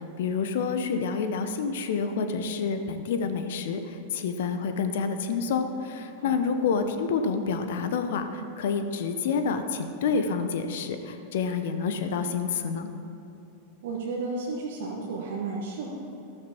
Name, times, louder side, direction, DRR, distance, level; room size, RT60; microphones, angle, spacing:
voice 1, 0.2-12.9, left 5 dB, 55° left, 8 dB, 0.7 m, -28 dB
voice 2, 6.2-6.5 13.8-16.0, right 3 dB, 55° right, -2 dB, 1.3 m, -33 dB
14.0 x 13.0 x 2.9 m, 2.9 s
figure-of-eight pair, 90°, 0 cm